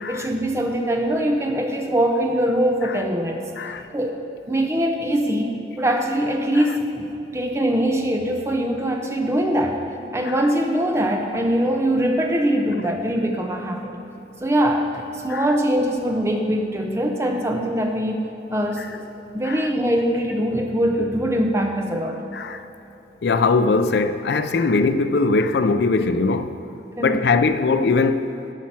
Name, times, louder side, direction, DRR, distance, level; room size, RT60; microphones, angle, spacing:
voice 1, 0.1-3.4 3.9-4.2 4.5-7.1 7.3-9.8 10.1-13.9 14.4-18.2 18.5-19.0 19.3-22.2 27.0-27.2, equal, 15° right, 2 dB, 0.8 m, -22 dB
voice 2, 3.6-3.9 10.2-10.3 15.3-15.5 18.8-18.9 19.4-19.7 22.3-22.6 23.2-26.6 27.0-28.3, left 3 dB, 70° left, 10 dB, 0.4 m, -20 dB
11.5 x 5.7 x 6.0 m, 2.9 s
head